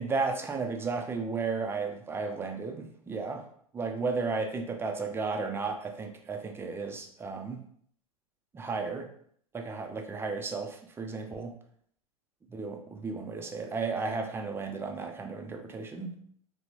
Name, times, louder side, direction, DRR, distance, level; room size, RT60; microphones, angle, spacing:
voice 1, 0.0-3.4 3.7-7.6 8.5-9.1 9.5-11.5 12.5-16.2, right 4 dB, 10° right, 4 dB, 0.4 m, -34 dB
3.5 x 2.1 x 2.9 m, 0.63 s
hypercardioid pair, 100°, 19 cm